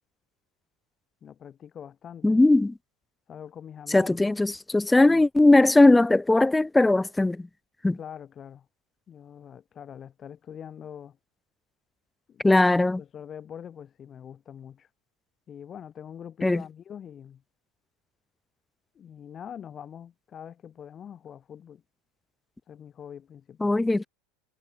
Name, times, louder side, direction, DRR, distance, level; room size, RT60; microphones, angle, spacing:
voice 1, 1.2-2.4 3.3-4.4 5.1-5.2 8.0-8.7 9.1-11.2 12.3-12.4 13.0-14.9 15.5-17.4 18.9-21.8 22.7-23.8, left 8 dB, 35° left, 1.3 m, -44 dB
voice 2, 2.2-2.7 3.9-7.5 7.8-8.0 12.4-13.0 16.4-16.6 23.6-24.1, left 2 dB, 10° left, 0.4 m, -19 dB
hypercardioid pair, 100°, 0 cm